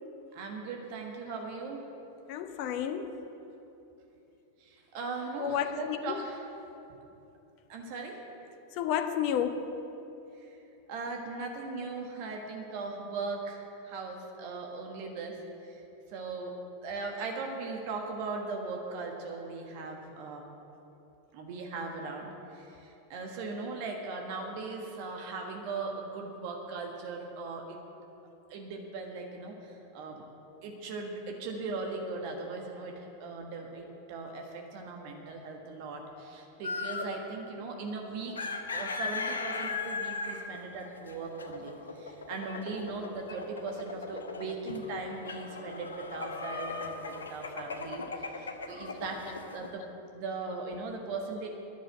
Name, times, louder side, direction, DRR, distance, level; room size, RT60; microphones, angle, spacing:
voice 1, 0.3-1.8 4.6-6.4 7.7-8.2 10.4-10.6 10.9-15.4 15.6-15.8 16.1-16.5 16.8-20.4 21.3-27.8 28.5-30.2 30.6-49.8 50.1-51.5, right 3 dB, 45° right, 1 dB, 1.4 m, -39 dB
voice 2, 2.3-3.1 5.4-6.2 8.7-9.7, left 9 dB, 45° left, 9 dB, 0.7 m, -31 dB
sound 1, 36.6-37.2 38.2-49.7, left 3 dB, 70° left, 0.9 m, -38 dB
10.5 x 7.3 x 8.8 m, 2.9 s
figure-of-eight pair, 90°, 0 cm